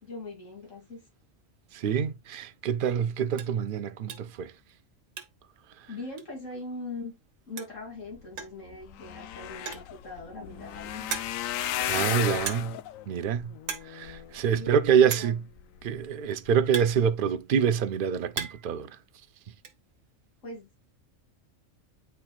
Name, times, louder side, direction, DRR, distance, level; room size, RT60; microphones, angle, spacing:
voice 1, 0.0-1.0 5.9-7.1 7.5-11.1 14.5-15.3 20.4-20.6, left 2 dB, 70° left, 3.3 m, -41 dB
voice 2, 1.7-4.5 11.9-12.8 13.1-13.5 13.8-15.4 15.8-19.0, right 7 dB, 60° right, 0.6 m, -26 dB
sound 1, 2.4-2.6 2.9-3.0 3.3-3.6 4.1-4.4 4.7-5.6 5.8-5.9 6.2-6.3 7.3-7.4 7.6-7.9 8.4-8.7 9.5-10.0 10.5-10.6 11.1-11.6 12.5-12.9 13.1-13.4 13.6-14.0 14.2-14.3 15.1-15.4 16.2-17.6 18.0-18.8 19.0-19.7, right 6 dB, 75° right, 1.4 m, -37 dB
sound 2, 8.4-8.5 8.7-15.0 15.6-16.0 16.5-16.7 16.9-17.0, left 12 dB, 90° left, 1.0 m, -34 dB
9.4 x 4.4 x 2.3 m
omnidirectional pair, 1.4 m